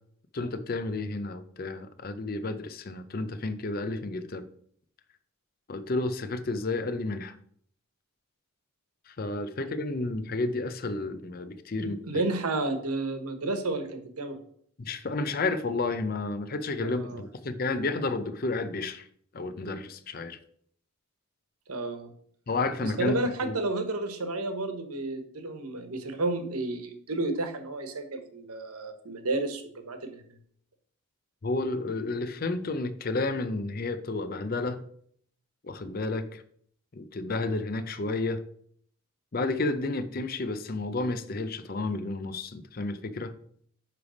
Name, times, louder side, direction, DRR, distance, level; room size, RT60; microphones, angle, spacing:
voice 1, 0.3-4.5 5.7-7.3 9.1-12.2 14.8-19.1 19.3-20.4 22.5-23.2 23.4-23.6 31.4-34.8 35.6-36.4 36.9-38.4 39.3-43.3, left 3 dB, 40° left, 11 dB, 0.5 m, -31 dB
voice 2, 11.8-14.4 16.8-17.2 21.7-22.1 22.8-30.2, right 2 dB, 90° right, 8 dB, 1.2 m, -31 dB
9.9 x 3.4 x 5.1 m, 0.63 s
head